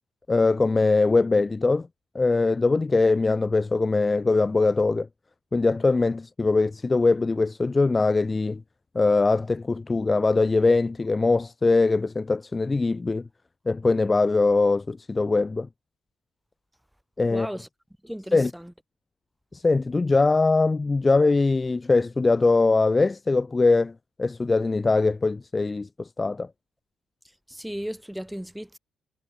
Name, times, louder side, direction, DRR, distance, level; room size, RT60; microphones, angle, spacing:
voice 1, 0.3-1.9 2.1-5.1 5.5-8.6 8.9-13.3 13.7-15.7 17.2-17.5 18.3-18.5 19.5-26.5, left 3 dB, 25° left, 0.4 m, -22 dB
voice 2, 17.3-17.7 18.0-18.7 27.2-28.8, equal, 5° right, 2.8 m, -36 dB
cardioid pair, 90°, 0 cm